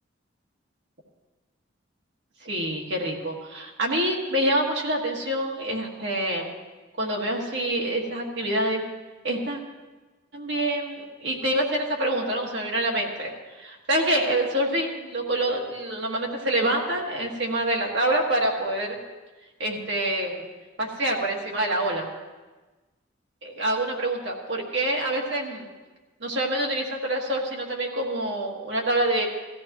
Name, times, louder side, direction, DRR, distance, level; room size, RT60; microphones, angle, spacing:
voice 1, 2.4-6.5 7.0-8.8 9.2-9.6 10.3-13.3 13.6-19.0 19.6-20.5 20.8-22.1 23.4-25.7 26.2-29.3, right 1 dB, 60° right, -1 dB, 1.7 m, -26 dB
18.0 x 14.0 x 3.0 m, 1.2 s
head